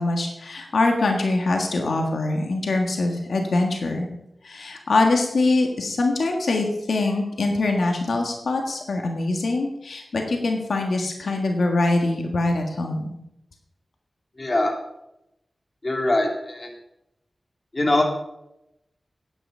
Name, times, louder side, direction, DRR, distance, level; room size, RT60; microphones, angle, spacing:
voice 1, 0.0-4.1 4.4-13.1, left 2 dB, 90° left, 3 dB, 1.5 m, -23 dB
voice 2, 14.4-14.7 15.8-16.7 17.7-18.0, left 1 dB, 35° left, 1 dB, 2.8 m, -22 dB
9.8 x 9.8 x 5.5 m, 0.84 s
wide cardioid pair, 85°, 0 cm